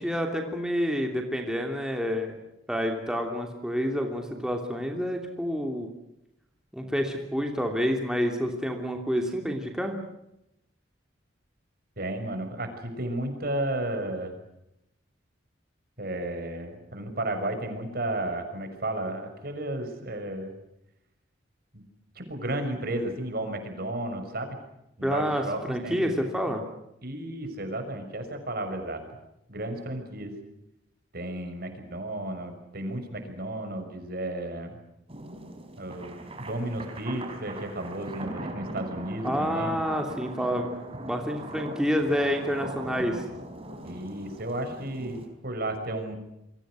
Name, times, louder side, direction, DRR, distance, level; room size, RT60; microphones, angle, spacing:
voice 1, 0.0-2.4 2.7-5.9 6.7-9.9 25.0-26.6 39.2-43.2, equal, 5° right, 3 dB, 3.0 m, -28 dB
voice 2, 12.0-14.3 16.0-20.5 21.7-21.8 22.1-24.6 25.0-26.0 27.0-29.0 29.5-30.3 31.1-34.8 35.8-39.8 43.8-46.1, right 1 dB, 55° right, 6 dB, 6.4 m, -33 dB
sound 1, 35.1-45.3, right 1 dB, 35° right, 4.9 m, -40 dB
29.0 x 24.0 x 6.4 m, 0.85 s
head